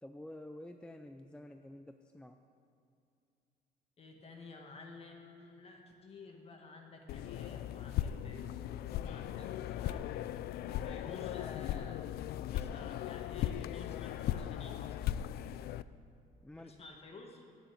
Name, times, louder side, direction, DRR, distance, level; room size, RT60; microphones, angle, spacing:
voice 1, 0.0-2.4 16.4-16.7, left 1 dB, 5° left, 6 dB, 0.4 m, -49 dB
voice 2, 4.0-15.0 16.6-17.4, left 3 dB, 35° left, 2 dB, 1.8 m, -53 dB
sound 1, 7.1-15.8, left 12 dB, 70° left, 0.4 m, -38 dB
9.4 x 8.7 x 8.4 m, 2.4 s
cardioid pair, 110°, 17 cm